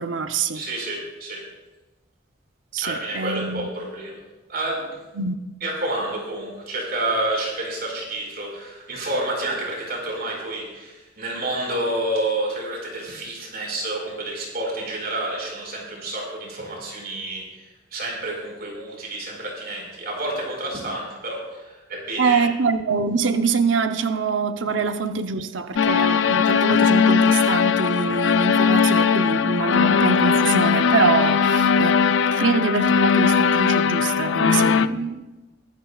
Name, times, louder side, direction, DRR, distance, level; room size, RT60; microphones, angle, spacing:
voice 1, 0.0-0.6 2.7-3.7 5.1-5.4 22.2-32.0 32.3-35.3, right 4 dB, 85° right, 8 dB, 0.8 m, -24 dB
voice 2, 0.5-1.4 2.8-4.2 4.5-5.0 5.6-22.5, right 1 dB, 55° right, -1 dB, 5.3 m, -29 dB
sound 1, 25.8-34.9, left 6 dB, 90° left, 0.5 m, -19 dB
22.5 x 13.0 x 2.4 m, 1.1 s
head